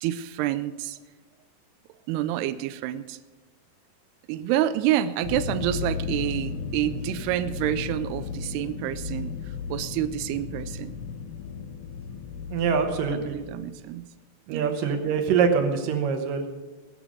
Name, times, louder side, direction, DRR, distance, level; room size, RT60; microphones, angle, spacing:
voice 1, 0.0-1.0 2.1-3.2 4.3-10.9 13.1-14.1 14.5-14.8, right 13 dB, 85° right, 12 dB, 2.5 m, -28 dB
sound 1, 5.2-13.8, left 6 dB, 75° left, 2.4 m, -35 dB
voice 2, 12.5-13.4 14.5-16.6, right 6 dB, 65° right, 6 dB, 2.5 m, -24 dB
20.0 x 7.0 x 6.3 m, 1.3 s
omnidirectional pair, 4.7 m